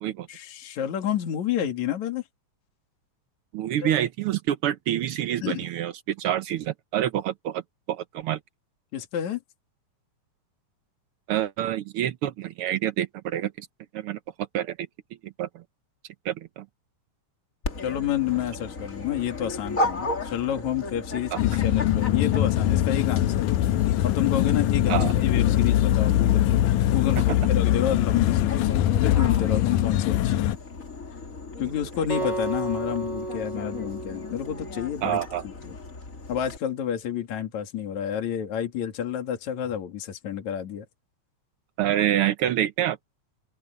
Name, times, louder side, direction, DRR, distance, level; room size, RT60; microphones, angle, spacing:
voice 1, 0.3-2.2 3.8-4.0 5.4-5.6 8.9-9.4 17.8-23.5 24.0-24.9 25.2-28.7 29.0-30.5 31.6-35.2 35.6-35.8 36.3-40.9, left 10 dB, 65° left, 3.5 m, -29 dB
voice 2, 3.5-7.6 7.9-8.4 11.3-13.7 13.9-14.2 14.5-14.8 15.2-15.6 16.2-16.6 21.3-21.4 24.9-25.1 35.0-35.5 41.8-43.0, right 11 dB, 85° right, 1.2 m, -27 dB
Dog, 17.6-36.6, left 2 dB, 25° left, 2.5 m, -36 dB
sound 1, 21.4-30.6, left 13 dB, 85° left, 2.2 m, -22 dB
Acoustic guitar, 32.1-35.3, right 2 dB, 10° right, 7.7 m, -33 dB
open air
omnidirectional pair, 3.6 m